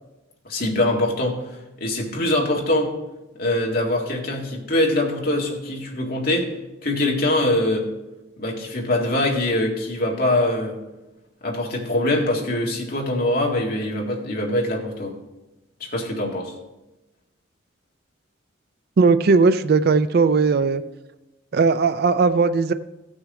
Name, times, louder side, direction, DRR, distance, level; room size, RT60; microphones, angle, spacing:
voice 1, 0.5-1.4 1.8-2.9 3.4-6.5 6.8-7.9 8.4-10.8 11.4-15.1 15.8-16.5, left 1 dB, 50° left, -1 dB, 1.8 m, -23 dB
voice 2, 19.0-20.8 21.5-22.7, right 4 dB, 50° right, 12 dB, 0.4 m, -18 dB
15.5 x 6.3 x 3.7 m, 1.0 s
head